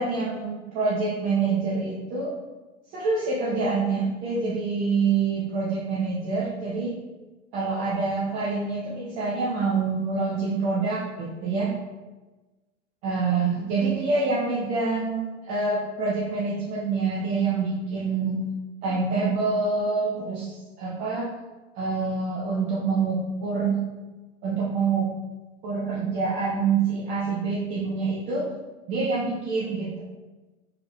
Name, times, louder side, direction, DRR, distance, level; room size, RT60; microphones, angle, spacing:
voice 1, 0.0-2.3 2.9-6.9 7.5-11.7 13.0-18.4 18.8-21.3 21.8-23.8 24.4-25.1 25.6-28.5 28.9-30.0, right 4 dB, 20° right, -6 dB, 0.3 m, -26 dB
4.6 x 3.1 x 2.3 m, 1.2 s
figure-of-eight pair, 95°, 39 cm